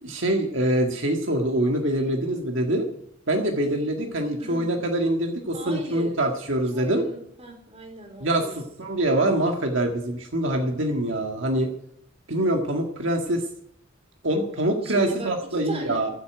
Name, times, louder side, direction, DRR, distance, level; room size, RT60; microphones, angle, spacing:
voice 1, 0.0-2.9 3.3-7.0 8.2-11.7 12.3-13.5 14.2-16.1, right 1 dB, 70° right, 2 dB, 1.9 m, -24 dB
voice 2, 4.4-4.7 5.5-6.2 6.7-8.6 14.8-16.0, right 1 dB, 30° right, 4 dB, 3.7 m, -37 dB
14.5 x 8.4 x 9.1 m, 0.73 s
head